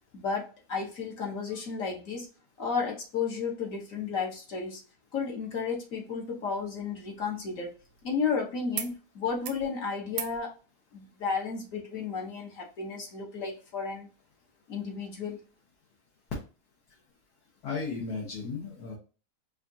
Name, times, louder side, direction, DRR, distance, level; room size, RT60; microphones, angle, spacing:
voice 1, 0.1-2.3 2.6-4.8 5.1-7.7 8.0-10.5 10.9-14.1 14.7-15.4, left 5 dB, 65° left, 0 dB, 1.4 m, -33 dB
sound 1, 6.6-8.3 8.7-8.9 9.2-9.7 10.1-10.4 11.7-11.8, right 9 dB, 80° right, 1.0 m, -41 dB
voice 2, 17.6-19.0, left 4 dB, 90° left, -3 dB, 1.6 m, -35 dB
4.9 x 2.5 x 2.7 m, 0.34 s
omnidirectional pair, 1.6 m